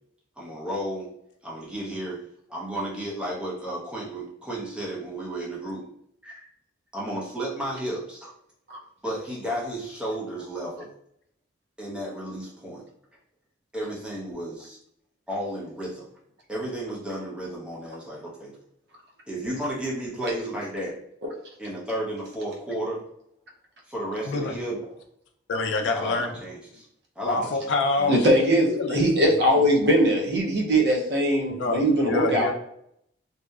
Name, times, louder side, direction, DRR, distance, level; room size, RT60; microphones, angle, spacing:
voice 1, 0.4-1.1 1.4-2.2 2.5-5.9 6.2-6.5 6.9-8.3 9.0-10.9 11.8-12.8 13.7-14.8 15.3-16.1 16.5-18.5 19.3-20.9 21.6-23.0 23.9-24.9 25.9-26.8 27.2-27.5 28.0-28.1, right 1 dB, 5° right, -5 dB, 0.6 m, -33 dB
voice 2, 25.5-26.3 27.3-28.2 28.6-29.0 31.6-32.5, left 3 dB, 70° left, 4 dB, 0.4 m, -26 dB
voice 3, 28.1-32.5, equal, 60° right, 0 dB, 0.5 m, -21 dB
2.7 x 2.0 x 2.2 m, 0.72 s
head